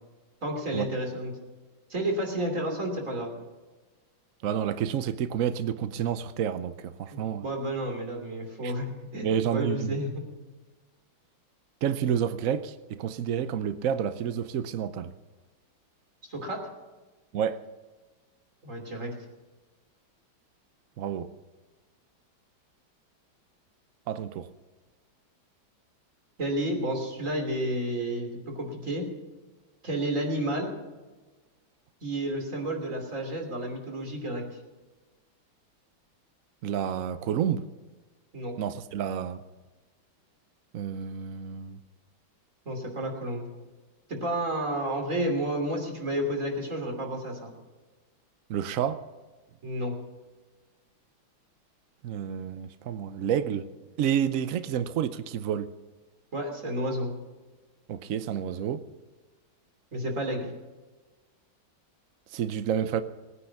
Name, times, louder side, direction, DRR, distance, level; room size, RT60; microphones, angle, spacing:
voice 1, 0.4-1.3 1.9-3.3 7.1-10.2 16.2-16.6 18.6-19.1 26.4-29.1 29.8-30.7 32.0-34.4 38.3-38.6 42.6-43.5 44.1-47.5 49.6-49.9 56.3-57.1 59.9-60.5, right 1 dB, 40° right, 3.3 m, -31 dB
voice 2, 4.4-7.5 8.6-8.7 9.2-10.0 11.8-15.1 17.3-17.6 21.0-21.3 24.1-24.5 36.6-37.7 38.6-39.4 40.7-41.8 48.5-49.1 52.0-53.7 54.0-55.7 57.9-58.8 62.3-63.0, right 9 dB, 75° right, 0.7 m, -29 dB
20.0 x 9.8 x 5.9 m
omnidirectional pair, 2.2 m